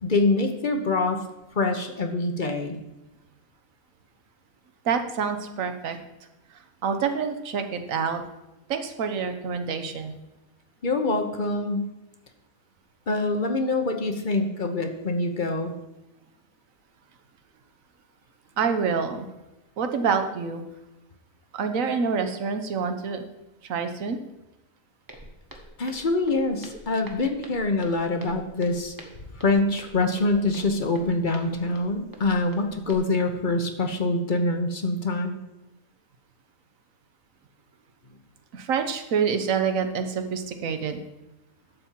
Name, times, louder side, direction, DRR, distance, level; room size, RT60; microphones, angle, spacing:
voice 1, 0.0-1.2 1.5-2.8 10.8-11.9 13.1-15.7 25.8-28.9 29.3-35.4, left 2 dB, 40° left, 5 dB, 0.9 m, -25 dB
voice 2, 4.8-6.0 6.8-8.2 8.7-10.1 18.6-19.3 19.8-20.6 21.5-23.2 23.6-24.2 38.5-41.0, right 6 dB, 65° right, 7 dB, 1.3 m, -27 dB
Walk footsteps, 25.1-32.9, right 1 dB, 15° right, 1.2 m, -47 dB
12.0 x 4.3 x 7.4 m, 0.98 s
omnidirectional pair, 1.6 m